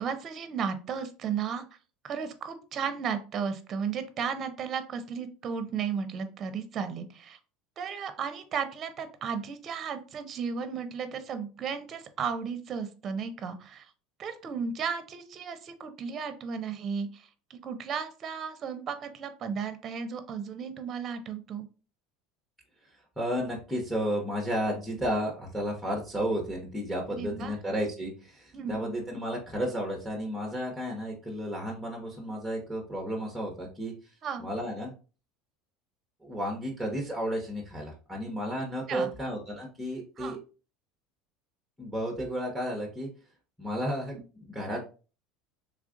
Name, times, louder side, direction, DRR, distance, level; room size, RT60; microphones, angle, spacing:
voice 1, 0.0-1.6 2.0-7.4 7.8-13.9 14.2-21.7 27.1-27.5 28.5-28.9 34.2-34.5 38.9-39.1 40.2-40.4, right 6 dB, 40° right, 10 dB, 0.6 m, -34 dB
voice 2, 23.2-33.9 34.4-34.9 36.2-40.4 41.8-43.1 43.6-44.8, equal, ahead, 0 dB, 0.9 m, -32 dB
3.4 x 2.4 x 3.7 m, 0.35 s
supercardioid pair, 115°, 0 cm